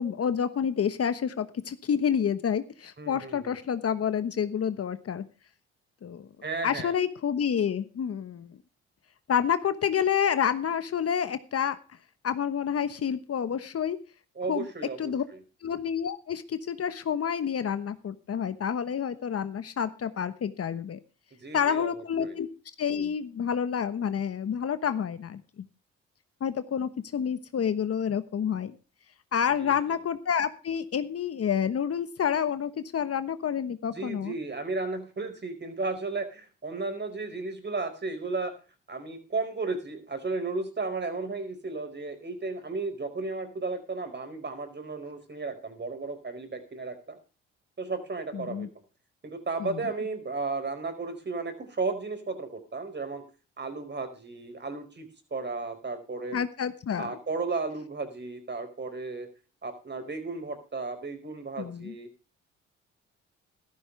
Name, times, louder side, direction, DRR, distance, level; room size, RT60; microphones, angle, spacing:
voice 1, 0.0-5.2 6.0-6.3 6.6-8.5 9.3-11.8 12.2-14.0 14.5-14.7 15.0-15.2 15.6-21.0 21.5-22.5 22.8-25.4 26.4-28.7 29.3-34.3 48.3-48.7 49.6-49.8 56.3-57.2 61.6-61.9, left 8 dB, 50° left, 12 dB, 1.2 m, -29 dB
voice 2, 3.0-3.5 6.4-6.9 14.4-15.4 21.4-21.9 22.2-22.4 29.6-29.8 33.9-38.5 38.9-47.2 47.8-48.7 49.2-53.2 53.6-56.4 57.0-59.3 59.6-62.1, right 3 dB, 35° right, 8 dB, 4.8 m, -34 dB
14.5 x 13.0 x 3.3 m, 0.34 s
supercardioid pair, 55°, 30 cm